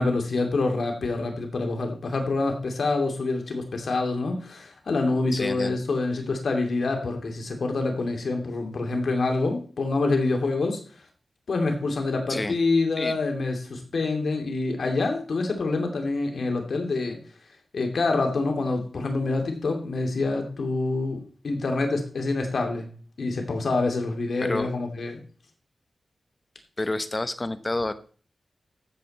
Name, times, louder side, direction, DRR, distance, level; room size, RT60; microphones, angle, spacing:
voice 1, 0.0-10.8 11.5-17.2 17.7-22.9 23.2-25.2, left 3 dB, 75° left, 3 dB, 2.6 m, -26 dB
voice 2, 5.3-5.8 12.3-12.6 13.0-13.2 24.4-24.7 26.8-27.9, left 2 dB, 30° left, 12 dB, 1.1 m, -29 dB
14.0 x 7.7 x 4.2 m, 0.41 s
wide cardioid pair, 70°, 0 cm